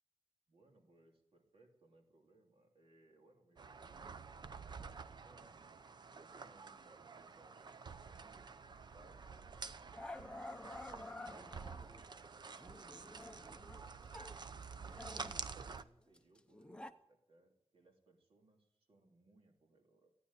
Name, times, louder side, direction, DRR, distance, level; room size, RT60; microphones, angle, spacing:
voice 1, 0.5-5.6 6.2-11.8 12.6-14.1 14.6-20.1, right 2 dB, 60° right, 1 dB, 3.1 m, -68 dB
sound 1, 3.6-15.8, right 5 dB, 40° right, 0.6 m, -50 dB
Growling, 9.0-9.2 9.9-12.0 12.6-14.4 14.6-16.9, left 2 dB, 10° left, 0.6 m, -51 dB
14.5 x 10.0 x 9.7 m, 0.83 s
wide cardioid pair, 175°, 11 cm